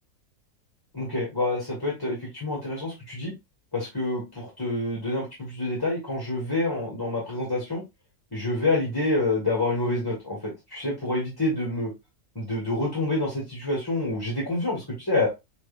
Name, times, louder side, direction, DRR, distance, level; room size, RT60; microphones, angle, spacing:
voice 1, 0.9-3.3 3.7-7.8 8.3-11.9 12.4-15.3, left 2 dB, 15° left, -4 dB, 1.7 m, -27 dB
6.2 x 3.0 x 2.5 m, 0.23 s
omnidirectional pair, 1.5 m